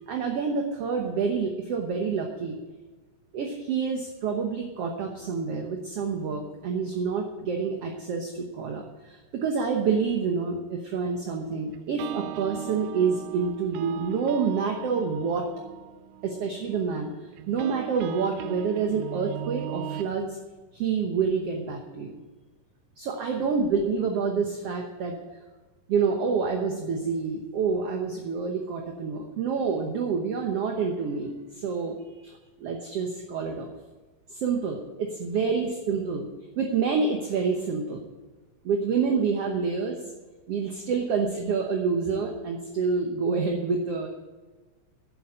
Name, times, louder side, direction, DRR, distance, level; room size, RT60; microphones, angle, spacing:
voice 1, 0.1-2.6 3.3-15.5 16.2-17.1 17.5-20.4 20.7-22.1 23.0-25.1 25.9-32.0 32.6-33.7 34.3-36.3 36.6-38.0 38.6-40.0 40.5-44.1, right 5 dB, 60° right, 2 dB, 1.7 m, -27 dB
sound 1, 11.7-20.1, right 11 dB, 85° right, 2.2 m, -39 dB
8.5 x 8.1 x 8.9 m, 1.2 s
omnidirectional pair, 3.9 m